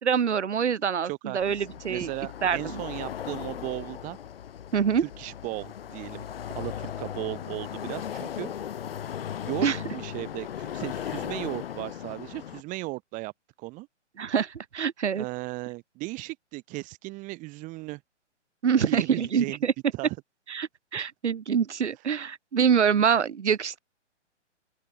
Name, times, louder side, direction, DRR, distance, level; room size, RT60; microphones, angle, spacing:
voice 1, 0.0-2.1 2.4-2.8 4.7-5.0 9.6-9.8 14.2-15.2 18.6-19.7 20.5-23.8, right 7 dB, 70° right, 1.2 m, -25 dB
voice 2, 1.0-4.2 4.7-6.2 6.5-8.5 9.4-9.7 9.9-13.3 13.6-13.9 15.1-18.0 18.8-19.6 19.9-20.2, right 22 dB, 20° right, 1.5 m, -36 dB
sound 1, 1.4-12.6, left 9 dB, 55° left, 7.1 m, -37 dB
open air
figure-of-eight pair, 130°, 36 cm